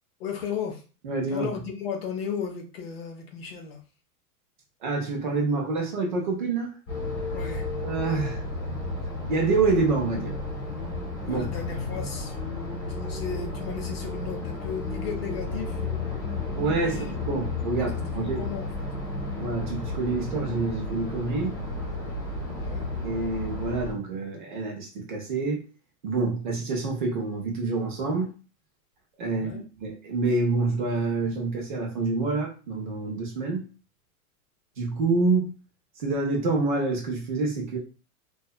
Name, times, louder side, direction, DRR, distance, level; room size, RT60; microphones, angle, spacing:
voice 1, 0.2-0.8 1.3-3.8 7.3-7.7 11.2-12.4 13.0-15.8 16.8-17.1 17.9-18.9 22.5-22.9 29.3-29.6, left 6 dB, 45° left, 3 dB, 0.5 m, -35 dB
voice 2, 1.0-1.5 4.8-6.7 7.8-8.4 9.3-10.4 11.3-11.5 16.6-17.0 17.2-18.5 19.4-21.6 23.0-25.6 26.0-28.3 29.2-33.7 34.8-35.5 36.0-37.8, right 3 dB, 35° right, 0 dB, 0.4 m, -27 dB
sound 1, 6.9-23.9, left 2 dB, 25° left, 1.0 m, -32 dB
2.7 x 2.2 x 2.3 m, 0.35 s
supercardioid pair, 160°, 44 cm